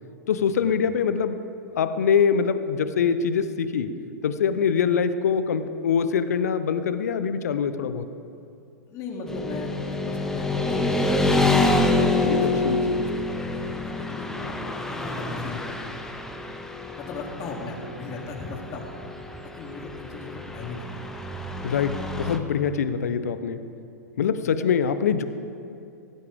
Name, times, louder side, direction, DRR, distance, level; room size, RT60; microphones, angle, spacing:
voice 1, 0.3-1.4 1.8-3.9 4.2-8.0 12.2-13.1 21.6-23.6 24.2-25.2, left 7 dB, 65° left, 11 dB, 0.9 m, -24 dB
voice 2, 8.9-11.1 11.9-14.6 14.9-15.8 17.0-18.9 19.5-21.1 22.2-22.3, left 3 dB, 35° left, -1 dB, 3.0 m, -38 dB
Motorcycle / Traffic noise roadway noise, 9.3-22.4, left 2 dB, 5° left, 1.1 m, -27 dB
18.0 x 14.5 x 3.7 m, 2.6 s
figure-of-eight pair, 100°, 9 cm